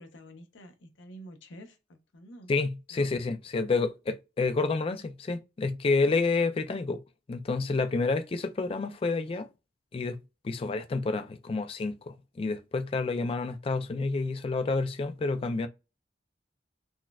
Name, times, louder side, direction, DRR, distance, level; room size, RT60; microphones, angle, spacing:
voice 1, 0.0-2.5 2.9-3.2 10.6-10.8, equal, 85° left, 0.7 m, -49 dB
voice 2, 2.5-7.0 7.3-9.5 9.9-10.2 10.4-15.7, left 3 dB, 30° left, 0.3 m, -29 dB
4.1 x 2.3 x 2.2 m
head